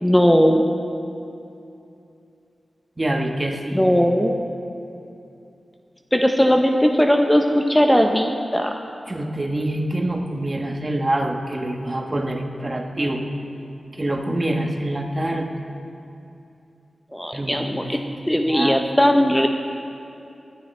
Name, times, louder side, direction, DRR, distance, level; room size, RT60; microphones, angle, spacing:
voice 1, 0.0-0.6 3.7-4.3 6.1-8.7 17.1-18.0 18.3-19.5, equal, 10° left, 3 dB, 0.8 m, -18 dB
voice 2, 3.0-3.9 9.1-13.2 13.9-15.5 17.3-17.7 18.5-18.8, right 1 dB, 30° right, 2 dB, 1.3 m, -25 dB
18.5 x 11.5 x 3.3 m, 2.7 s
cardioid pair, 55°, 0 cm